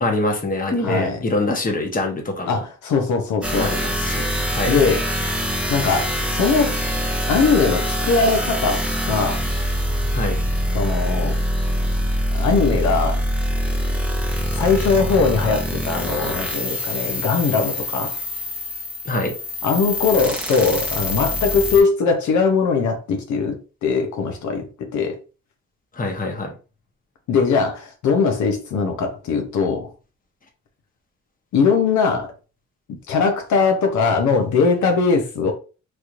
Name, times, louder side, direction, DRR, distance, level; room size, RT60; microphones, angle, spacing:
voice 1, 0.0-2.6 3.6-4.8 10.1-10.4 19.1-19.3 25.9-26.5, left 2 dB, 30° left, 1.0 m, -24 dB
voice 2, 0.8-1.2 2.5-3.8 4.7-5.0 5.7-6.8 7.3-9.4 10.7-11.4 12.3-13.2 14.5-18.2 19.6-25.2 27.3-29.9 31.5-32.3 33.1-35.5, left 5 dB, 70° left, 0.8 m, -20 dB
sound 1, 3.4-21.8, equal, 5° right, 0.8 m, -24 dB
3.2 x 3.0 x 2.5 m
cardioid pair, 90°, 30 cm